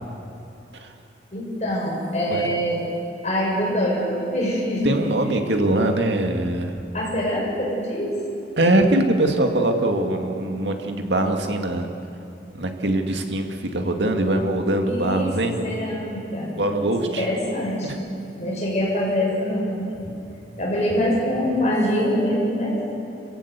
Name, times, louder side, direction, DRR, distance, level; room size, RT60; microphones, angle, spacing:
voice 1, 1.3-2.8 3.2-5.0 6.9-8.2 14.8-16.5 16.8-18.1 18.3-20.1 20.6-23.0, equal, 40° left, -4 dB, 7.0 m, -24 dB
voice 2, 4.8-6.7 8.6-11.9 12.5-15.6 16.6-17.3 17.8-18.0, right 1 dB, 85° right, 4 dB, 2.2 m, -22 dB
27.5 x 15.5 x 8.3 m, 2.6 s
head